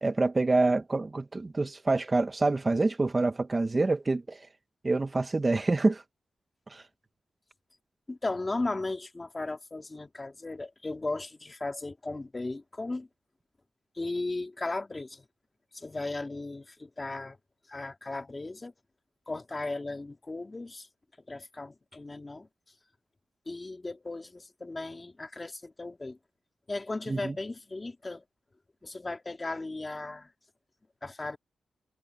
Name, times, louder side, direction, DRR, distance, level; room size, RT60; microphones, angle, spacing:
voice 1, 0.0-4.4 4.8-6.0 6.7-6.8 27.1-27.3, right 3 dB, 25° right, 1.0 m, -26 dB
voice 2, 8.1-13.1 14.0-15.3 15.7-17.4 17.7-18.7 19.3-20.9 21.3-22.5 23.5-26.2 26.7-28.2 28.8-30.3 31.0-31.4, left 2 dB, 25° left, 2.1 m, -36 dB
wide cardioid pair, 100°, 0 cm